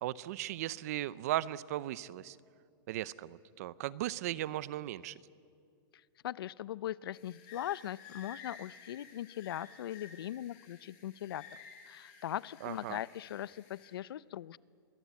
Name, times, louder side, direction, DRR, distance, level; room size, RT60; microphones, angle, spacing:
voice 1, 0.0-2.4 2.9-5.2 12.6-13.0, right 14 dB, 40° right, 18 dB, 0.6 m, -37 dB
voice 2, 6.2-11.5 11.9-14.6, left 12 dB, 75° left, 20 dB, 0.6 m, -40 dB
sound 1, 7.1-13.9, left 6 dB, 30° left, 6.7 m, -54 dB
28.0 x 22.5 x 8.3 m, 2.4 s
supercardioid pair, 170°, 12 cm